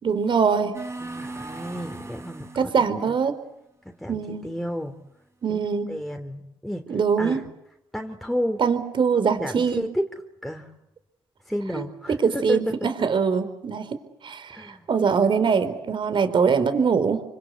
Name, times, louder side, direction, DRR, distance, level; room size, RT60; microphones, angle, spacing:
voice 1, 0.0-0.7 2.6-3.3 4.1-4.5 5.4-5.9 6.9-7.4 8.6-9.8 11.7-11.8 12.2-13.9 14.2-17.2, right 6 dB, 55° right, 11 dB, 4.4 m, -23 dB
sound 1, 0.7-2.8, right 2 dB, 25° right, 6.4 m, -38 dB
voice 2, 1.0-3.1 3.8-5.0 5.5-7.4 7.9-8.6 9.4-10.7 11.4-13.2 14.5-14.9, equal, ahead, 3 dB, 3.1 m, -32 dB
28.0 x 25.0 x 8.3 m, 0.86 s
cardioid pair, 70°, 10 cm